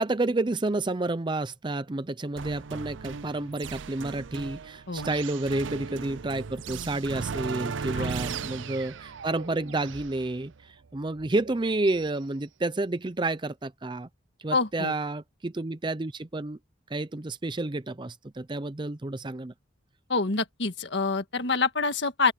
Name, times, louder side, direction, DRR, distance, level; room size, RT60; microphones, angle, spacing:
voice 1, 0.0-14.1 14.4-16.6 16.9-19.5, right 2 dB, 25° right, 0.5 m, -30 dB
sound 1, 2.4-12.1, right 5 dB, 80° right, 0.5 m, -37 dB
voice 2, 14.5-14.9 20.1-22.3, left 4 dB, 65° left, 1.7 m, -26 dB
open air
head